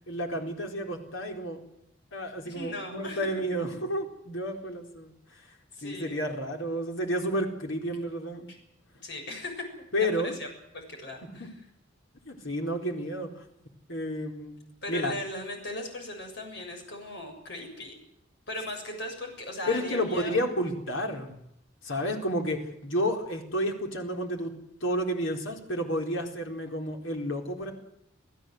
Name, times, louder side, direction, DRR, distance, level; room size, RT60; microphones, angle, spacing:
voice 1, 0.1-1.6 2.1-5.5 5.8-8.5 9.9-10.3 11.3-11.5 12.3-13.4 13.9-14.6 14.9-15.1 19.7-21.3 21.8-24.5 24.8-27.7, equal, 85° left, 3 dB, 4.2 m, -31 dB
voice 2, 2.4-3.2 5.7-6.2 8.5-8.6 9.0-9.7 10.0-10.5 10.7-11.5 14.8-18.0 18.5-20.4, left 1 dB, 60° left, 4 dB, 7.2 m, -38 dB
27.5 x 16.0 x 8.0 m, 0.78 s
head